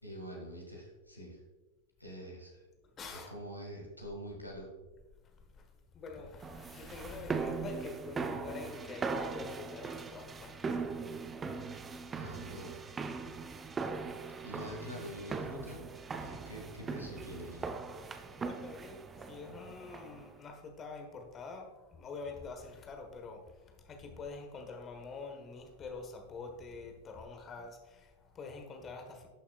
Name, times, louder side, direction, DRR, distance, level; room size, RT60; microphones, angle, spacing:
voice 1, 0.0-1.4 2.0-2.7 3.1-4.7 12.2-12.8 14.4-15.9 16.2-17.7, equal, 90° left, 0 dB, 1.8 m, -45 dB
voice 2, 3.0-3.4 5.2-10.8 11.1-11.2 14.2-14.4 18.4-29.3, left 4 dB, 25° left, 4 dB, 1.3 m, -46 dB
sound 1, 6.4-20.3, right 4 dB, 20° right, 0.5 m, -40 dB
11.5 x 6.3 x 2.4 m, 1.2 s
figure-of-eight pair, 90°, 0 cm